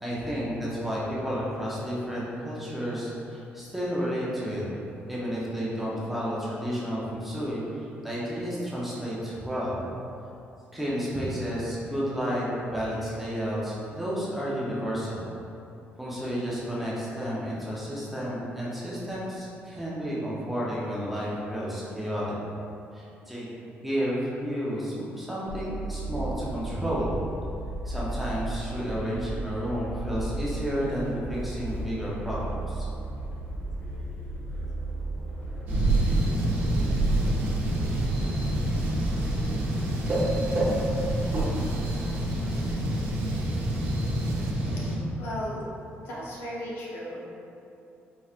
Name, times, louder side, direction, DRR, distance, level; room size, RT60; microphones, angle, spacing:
voice 1, 0.0-4.6 5.1-9.8 10.7-12.4 12.7-15.2 16.0-22.4 22.9-27.2 27.8-32.9, equal, 5° right, -8 dB, 0.6 m, -31 dB
sound 1, 25.5-39.4, right 1 dB, 20° left, 1.3 m, -35 dB
sound 2, 35.7-45.0, right 1 dB, 45° right, 0.9 m, -26 dB
sound 3, 35.8-44.5, right 3 dB, 85° right, 0.4 m, -42 dB
voice 2, 45.2-45.7 46.0-47.2, equal, 65° left, -5 dB, 0.7 m, -35 dB
4.3 x 3.1 x 2.4 m, 2.7 s
cardioid pair, 160°, 4 cm